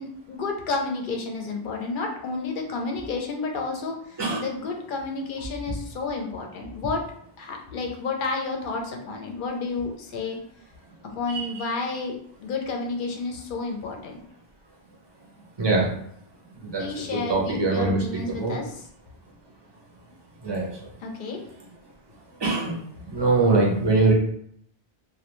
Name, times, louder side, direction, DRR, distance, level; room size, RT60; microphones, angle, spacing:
voice 1, 0.0-4.0 4.4-7.0 7.4-10.4 11.0-14.2 16.8-18.8 21.0-21.4, left 3 dB, 60° left, 2 dB, 0.6 m, -31 dB
voice 2, 11.3-11.7 15.6-15.9 16.6-18.0 18.3-18.6 20.4-20.7 22.4-22.7 23.1-24.1, right 3 dB, 30° right, -2 dB, 0.5 m, -23 dB
2.4 x 2.2 x 2.9 m, 0.66 s
omnidirectional pair, 1.1 m